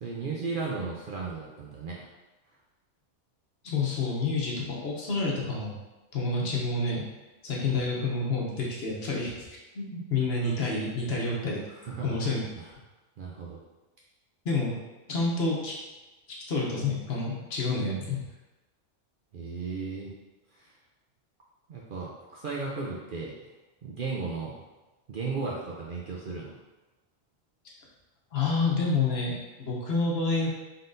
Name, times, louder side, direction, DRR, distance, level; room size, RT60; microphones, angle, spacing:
voice 1, 0.0-2.1 11.7-12.2 12.6-12.7 13.2-13.6 19.3-20.1 20.5-20.8 21.7-23.3 23.8-24.6 25.1-26.6, right 4 dB, 60° right, -4 dB, 0.6 m, -35 dB
voice 2, 3.6-5.7 6.1-7.1 7.4-9.5 9.7-11.6 12.0-12.4 14.4-14.8 15.1-15.8 16.5-18.2 28.3-30.5, left 3 dB, 60° left, -3 dB, 1.0 m, -28 dB
3.8 x 3.8 x 2.6 m, 1.1 s
omnidirectional pair, 1.3 m